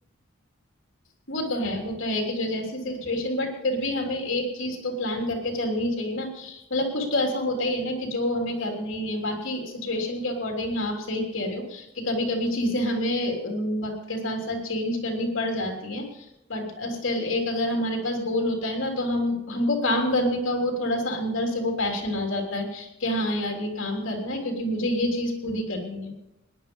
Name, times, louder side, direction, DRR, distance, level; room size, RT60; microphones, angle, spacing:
voice 1, 1.3-26.1, left 1 dB, 70° left, 1 dB, 3.4 m, -27 dB
18.0 x 10.5 x 5.4 m, 0.88 s
head